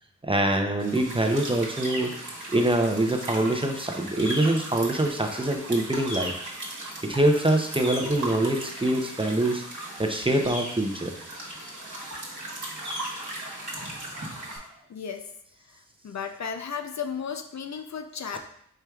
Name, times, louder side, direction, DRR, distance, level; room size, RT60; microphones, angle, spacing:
voice 1, 0.2-6.3 7.0-9.6 10.0-11.1 18.3-18.4, right 1 dB, 15° right, 2 dB, 0.5 m, -24 dB
sound 1, 0.8-14.6, right 1 dB, 65° right, 1.2 m, -37 dB
voice 2, 14.9-15.3 16.0-18.4, left 6 dB, 60° left, 5 dB, 0.5 m, -34 dB
4.9 x 4.5 x 2.3 m, 0.67 s
wide cardioid pair, 85°, 31 cm